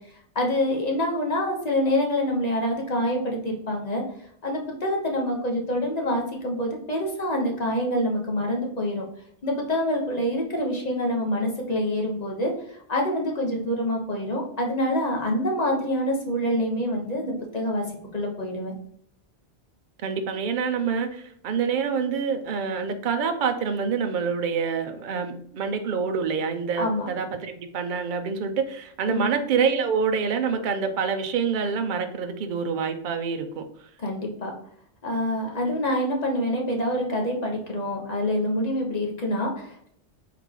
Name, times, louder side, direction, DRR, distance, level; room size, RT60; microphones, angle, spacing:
voice 1, 0.3-4.0 4.4-9.0 9.4-17.8 18.1-18.7 26.8-27.1 29.1-29.4 34.0-34.5 35.0-39.9, left 1 dB, 40° left, 0 dB, 0.9 m, -26 dB
voice 2, 20.0-33.6, right 6 dB, 55° right, 7 dB, 0.6 m, -26 dB
3.8 x 3.2 x 3.6 m, 0.69 s
omnidirectional pair, 1.2 m